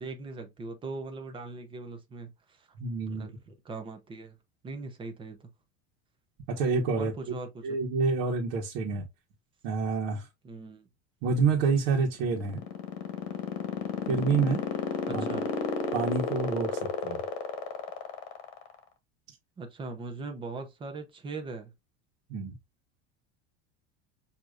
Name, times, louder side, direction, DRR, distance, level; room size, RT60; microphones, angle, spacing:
voice 1, 0.0-2.7 3.1-4.4 4.6-5.5 7.0-7.8 10.4-10.9 15.0-15.5 19.6-21.7, right 3 dB, 15° right, 0.7 m, -40 dB
voice 2, 2.8-3.3 6.5-7.3 7.6-9.0 9.6-10.3 11.2-12.6 14.1-14.6 15.1-15.3 15.9-17.2 22.3-22.5, right 4 dB, 65° right, 1.3 m, -28 dB
sound 1, 12.1-18.8, left 6 dB, 65° left, 1.3 m, -31 dB
6.5 x 2.8 x 2.4 m
cardioid pair, 160°, 33 cm